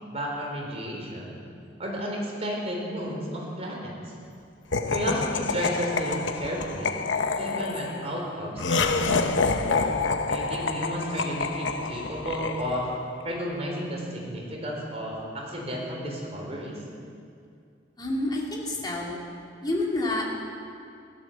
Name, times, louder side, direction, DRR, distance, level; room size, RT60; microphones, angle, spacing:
voice 1, 0.1-1.4 1.8-4.1 4.9-7.0 7.4-9.4 10.3-12.9 13.2-16.8, equal, 35° right, -1 dB, 3.9 m, -32 dB
Laughter, 4.7-13.1, left 4 dB, 85° left, 0.9 m, -28 dB
voice 2, 18.0-19.2 19.6-20.2, left 2 dB, 25° left, -3 dB, 2.8 m, -28 dB
16.0 x 12.0 x 7.1 m, 2.4 s
head